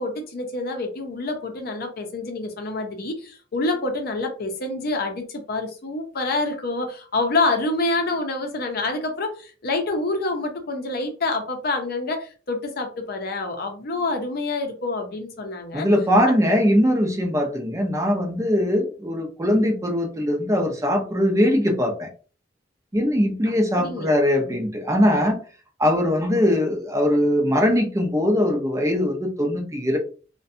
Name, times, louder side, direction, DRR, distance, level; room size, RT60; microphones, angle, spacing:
voice 1, 0.0-15.9 16.2-16.3 23.5-24.2, left 2 dB, 55° left, 0.6 m, -27 dB
voice 2, 15.7-22.1 22.9-25.4 25.8-30.0, equal, 15° right, 0.5 m, -21 dB
2.5 x 2.2 x 2.5 m
head